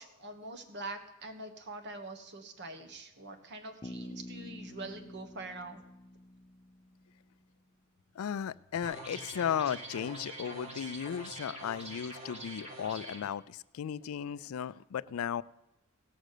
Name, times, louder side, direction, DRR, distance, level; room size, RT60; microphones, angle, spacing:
voice 1, 0.0-5.8, right 2 dB, 55° right, 8 dB, 1.3 m, -44 dB
Bass guitar, 3.8-7.5, left 1 dB, 20° left, 0.6 m, -48 dB
voice 2, 8.2-15.4, left 8 dB, 70° left, 17 dB, 0.4 m, -35 dB
sound 1, 8.8-13.2, right 1 dB, 30° right, 2.1 m, -44 dB
17.0 x 6.3 x 6.6 m, 0.94 s
head